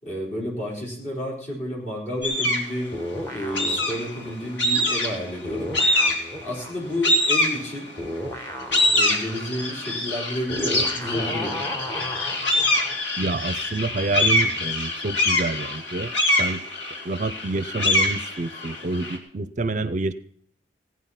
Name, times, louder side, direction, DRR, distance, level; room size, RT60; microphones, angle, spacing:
voice 1, 0.0-3.0 3.3-5.7 6.4-7.9 8.9-11.6, equal, 40° left, -3 dB, 4.5 m, -30 dB
sound 1, 2.2-2.7 3.5-4.2 4.6-5.3 5.7-6.4 7.0-8.0 8.4-19.2, left 1 dB, 90° left, 2.9 m, -24 dB
sound 2, 2.9-5.2 5.4-13.0, equal, 15° left, 1.3 m, -35 dB
voice 2, 13.2-16.1 16.4-16.6 17.0-20.1, right 3 dB, 40° right, 13 dB, 0.5 m, -27 dB
16.5 x 9.5 x 5.7 m, 0.62 s
head